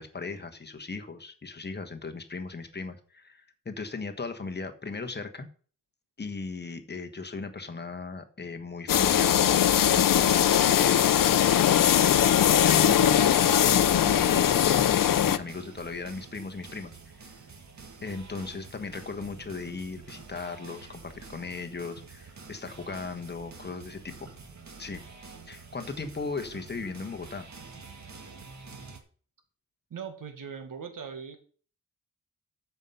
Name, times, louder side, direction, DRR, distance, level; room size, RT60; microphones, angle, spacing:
voice 1, 0.0-5.5 6.2-12.0 12.5-16.9 18.0-24.3 24.8-25.0 25.5-27.5, left 4 dB, 30° left, 6 dB, 1.3 m, -37 dB
sound 1, 8.9-15.4, left 10 dB, 70° left, 0.7 m, -21 dB
sound 2, 9.1-29.0, right 4 dB, 55° right, 2.1 m, -48 dB
voice 2, 29.9-31.4, right 6 dB, 70° right, 7 dB, 1.8 m, -40 dB
13.5 x 5.7 x 5.6 m, 0.43 s
wide cardioid pair, 120°, 34 cm